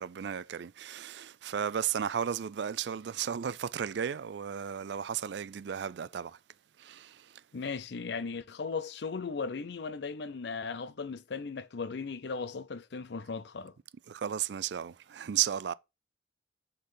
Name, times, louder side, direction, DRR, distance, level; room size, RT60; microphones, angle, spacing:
voice 1, 0.0-6.4 6.8-7.2 14.1-15.7, right 8 dB, 65° right, 0.4 m, -34 dB
voice 2, 7.5-13.7, left 4 dB, 60° left, 0.5 m, -37 dB
6.4 x 3.9 x 5.4 m
head